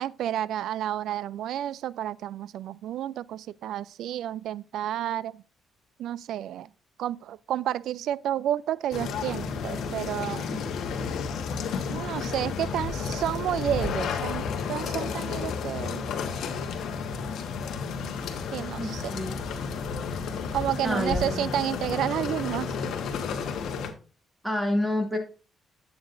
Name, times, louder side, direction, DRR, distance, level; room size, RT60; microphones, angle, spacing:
voice 1, 0.0-5.4 6.0-6.7 7.0-10.6 11.9-16.0 18.5-19.2 20.5-22.7, right 11 dB, 80° right, 0.3 m, -31 dB
sound 1, 8.9-23.9, left 5 dB, 75° left, 1.1 m, -32 dB
voice 2, 18.8-19.4 20.8-21.5 24.4-25.2, left 1 dB, 5° right, 2.3 m, -28 dB
9.4 x 8.1 x 2.5 m
cardioid pair, 90°, 0 cm